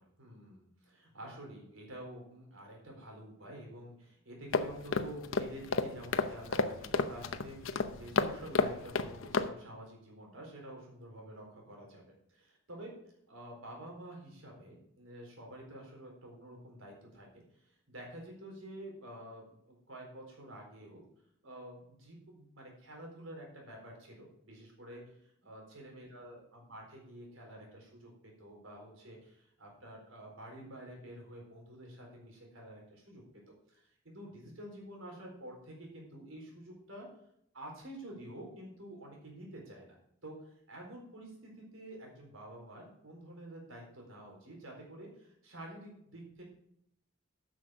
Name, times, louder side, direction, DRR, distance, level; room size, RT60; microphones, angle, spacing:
voice 1, 0.0-12.0 12.3-12.9 13.3-21.0 21.4-33.4 33.7-37.1 37.5-39.9 40.2-46.4, right 1 dB, 80° right, 0 dB, 4.2 m, -49 dB
sound 1, 4.5-9.5, left 4 dB, 80° left, 0.8 m, -32 dB
9.7 x 6.5 x 6.3 m, 0.71 s
head